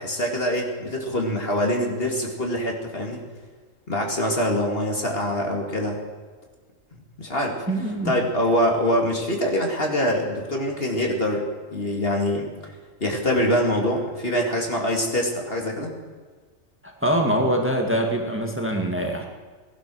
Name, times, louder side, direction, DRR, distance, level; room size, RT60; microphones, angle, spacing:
voice 1, 0.0-3.2 3.9-6.0 7.2-7.6 8.0-12.7 13.0-15.9, equal, 45° left, 1 dB, 2.5 m, -24 dB
voice 2, 7.7-8.2 17.0-19.3, right 1 dB, 10° right, 2 dB, 1.8 m, -23 dB
18.0 x 12.0 x 6.2 m, 1.5 s
omnidirectional pair, 1.4 m